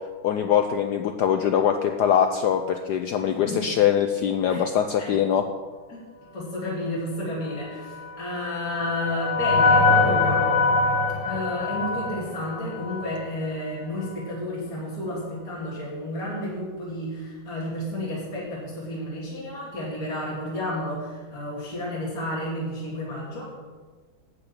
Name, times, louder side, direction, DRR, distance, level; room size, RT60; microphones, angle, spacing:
voice 1, 0.2-5.5, left 9 dB, 85° left, 6 dB, 0.9 m, -22 dB
voice 2, 3.2-3.8 4.5-4.6 5.0-5.2 5.9-6.0 6.3-10.5 11.2-23.5, left 1 dB, 40° left, -6 dB, 3.2 m, -31 dB
sound 1, 7.9-13.2, left 3 dB, 60° left, 2.1 m, -23 dB
12.0 x 5.2 x 8.5 m, 1.4 s
omnidirectional pair, 2.4 m